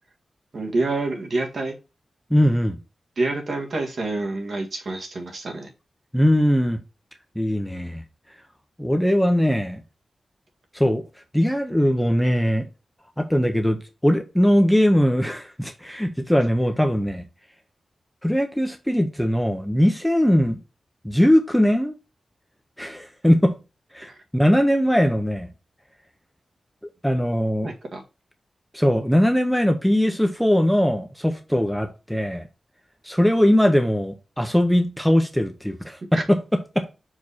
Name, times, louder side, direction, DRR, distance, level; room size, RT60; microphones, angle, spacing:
voice 1, 0.5-1.8 3.2-5.7 24.1-24.2 27.6-28.0 36.1-36.2, right 2 dB, 50° right, 1.8 m, -27 dB
voice 2, 2.3-2.8 6.1-6.8 7.4-8.0 8.8-9.8 10.7-11.0 11.3-12.7 13.2-13.8 14.0-17.2 18.2-20.6 21.0-21.9 22.8-23.6 23.9-25.5 27.0-27.7 28.7-32.5 33.0-36.9, equal, ahead, 0.7 m, -20 dB
5.9 x 4.9 x 4.1 m
wide cardioid pair, 155°, 0 cm